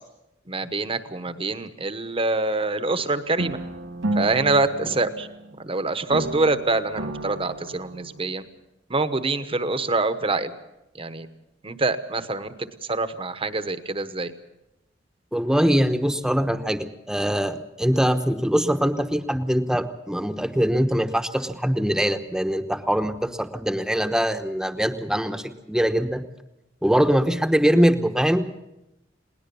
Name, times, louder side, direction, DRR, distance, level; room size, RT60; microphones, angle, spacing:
voice 1, 0.5-3.6 4.2-5.3 5.6-8.4 8.9-10.5 10.9-11.3 11.6-14.3, right 3 dB, 30° right, 11 dB, 1.1 m, -25 dB
sound 1, 3.4-5.7 6.1-8.4, right 2 dB, 85° right, 1.2 m, -32 dB
voice 2, 15.3-26.2 26.8-28.5, equal, 5° right, 9 dB, 1.0 m, -22 dB
21.0 x 18.5 x 6.9 m, 0.92 s
head